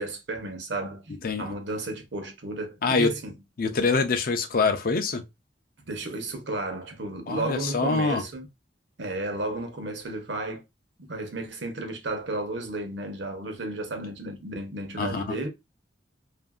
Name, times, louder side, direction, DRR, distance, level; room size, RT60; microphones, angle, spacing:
voice 1, 0.0-3.3 5.9-8.4 9.0-10.6 11.1-15.5, right 2 dB, 80° right, 0.8 m, -33 dB
voice 2, 2.8-3.1 3.6-5.2 7.3-8.2 15.0-15.4, left 4 dB, 50° left, 0.4 m, -25 dB
2.8 x 2.5 x 2.3 m
head